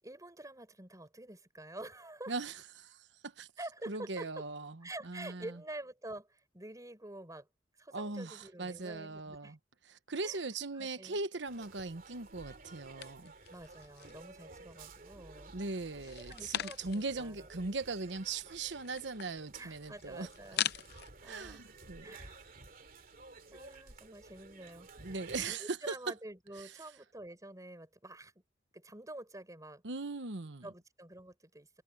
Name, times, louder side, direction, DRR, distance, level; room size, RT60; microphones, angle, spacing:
voice 1, 0.0-2.3 3.6-4.5 4.8-7.5 7.8-9.6 10.2-10.5 10.8-11.2 13.5-15.5 16.2-17.5 19.6-21.6 22.0-22.4 23.5-28.3 28.7-29.8 30.6-31.8, right 1 dB, 20° right, 4.6 m, -48 dB
voice 2, 2.3-3.5 3.9-5.5 7.9-9.6 10.1-13.3 15.5-20.3 21.2-22.0 25.0-26.0 29.8-30.7, right 3 dB, 90° right, 1.1 m, -39 dB
sound 1, 11.5-25.5, right 3 dB, 55° right, 2.7 m, -54 dB
sound 2, 13.0-14.3 14.7-15.4 15.9-17.2 17.5-17.6 17.8-21.1, left 11 dB, 65° left, 0.6 m, -41 dB
head